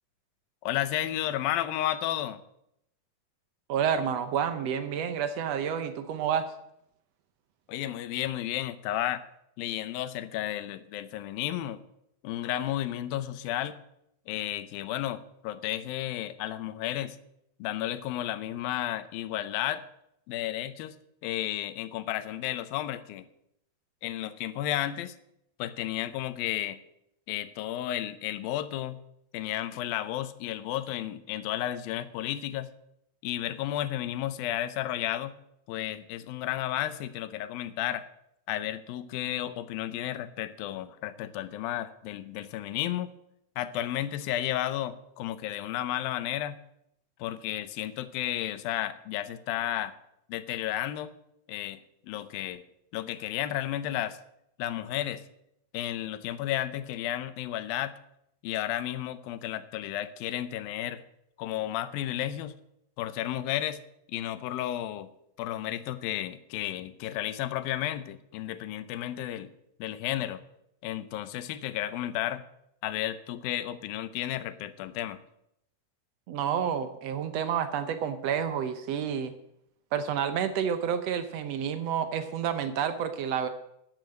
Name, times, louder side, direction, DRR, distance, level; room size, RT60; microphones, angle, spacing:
voice 1, 0.6-2.4 7.7-9.2 9.6-11.8 12.2-13.8 14.3-17.2 17.6-19.8 20.3-21.0 21.2-23.3 24.0-25.2 25.6-26.8 27.3-29.0 29.3-32.7 33.2-35.3 35.7-38.1 38.5-43.1 43.6-46.6 47.2-49.9 50.3-51.1 51.5-52.6 52.9-54.2 54.6-55.2 55.7-57.9 58.4-61.0 61.4-62.5 63.0-63.8 64.1-65.1 65.4-69.5 69.8-70.4 70.8-72.4 72.8-75.2, left 13 dB, 90° left, 13 dB, 2.6 m, -32 dB
voice 2, 3.7-6.5 76.3-79.3 79.9-83.5, right 8 dB, 75° right, 10 dB, 1.5 m, -29 dB
13.0 x 9.2 x 7.8 m, 0.78 s
omnidirectional pair, 4.0 m